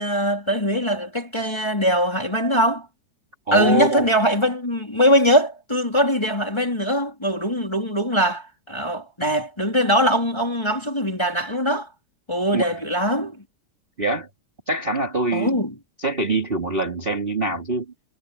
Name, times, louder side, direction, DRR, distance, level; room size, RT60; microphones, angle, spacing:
voice 1, 0.0-2.9 3.5-11.9 12.3-13.4 15.3-15.8, equal, 10° left, 3.3 m, -21 dB
voice 2, 3.5-4.1 12.5-12.7 14.0-14.3 14.7-15.5 16.0-17.8, right 2 dB, 15° right, 2.6 m, -24 dB
omnidirectional pair, 3.9 m